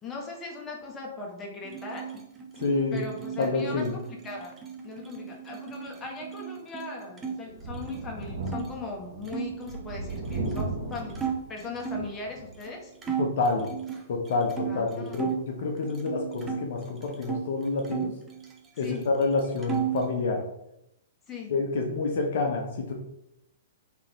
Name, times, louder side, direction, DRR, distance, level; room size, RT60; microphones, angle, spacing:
voice 1, 0.0-2.1 2.9-4.6 4.8-12.9 14.7-15.3 18.8-19.1 21.3-21.5, left 3 dB, 20° left, -1 dB, 1.0 m, -39 dB
sound 1, 1.6-7.4 7.7-8.7 9.3-12.1 12.6-12.7 13.0-15.4 15.8-17.5 17.8-19.0 19.2-20.1, right 8 dB, 15° right, 0.6 m, -35 dB
voice 2, 2.6-3.0 3.4-3.9 13.2-13.7 14.1-18.1 18.8-20.4 21.5-22.9, left 3 dB, 55° left, 1 dB, 0.6 m, -28 dB
Thunder, 7.5-12.6 13.0-13.1 14.5-14.6, right 2 dB, 55° right, 1.1 m, -36 dB
3.8 x 3.3 x 3.0 m, 0.83 s
figure-of-eight pair, 110°, 0 cm